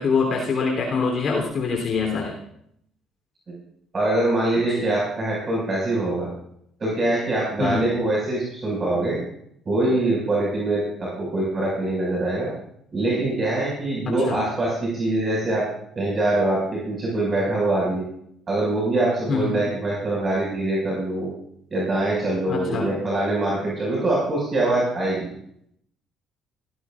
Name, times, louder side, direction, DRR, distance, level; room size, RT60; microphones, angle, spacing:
voice 1, 0.0-2.3 4.8-4.9 7.6-7.9 14.3-14.4 19.3-19.6 22.4-22.9, left 4 dB, 50° left, 0 dB, 3.3 m, -24 dB
voice 2, 3.9-6.3 6.8-9.2 9.7-12.5 12.9-15.7 16.0-18.1 18.5-21.3 21.7-25.3, right 2 dB, 35° right, -5 dB, 5.8 m, -23 dB
17.0 x 16.0 x 2.5 m, 0.70 s
cardioid pair, 90°, 0 cm